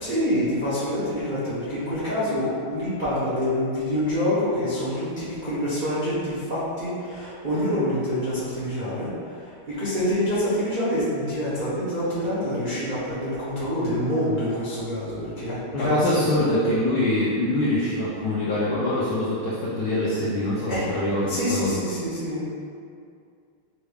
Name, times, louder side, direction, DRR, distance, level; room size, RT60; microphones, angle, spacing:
voice 1, 0.0-16.2 20.7-20.8 21.3-22.5, equal, 60° right, -12 dB, 0.5 m, -26 dB
voice 2, 15.7-21.8, left 1 dB, 75° left, -8 dB, 0.9 m, -24 dB
5.6 x 2.3 x 3.3 m, 2.3 s
omnidirectional pair, 2.3 m